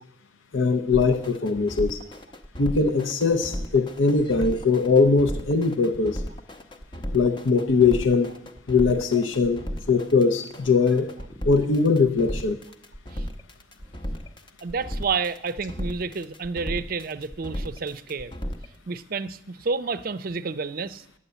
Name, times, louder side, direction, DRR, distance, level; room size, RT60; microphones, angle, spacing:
voice 1, 0.5-2.0 2.6-6.2 7.1-8.3 8.7-11.1 11.4-12.6, left 4 dB, 80° left, 8 dB, 0.7 m, -21 dB
sound 1, 0.9-18.6, equal, 25° left, 0.8 m, -34 dB
voice 2, 14.6-18.3 18.9-21.0, right 4 dB, 45° right, 14 dB, 0.5 m, -30 dB
9.8 x 8.7 x 8.0 m, 0.77 s
head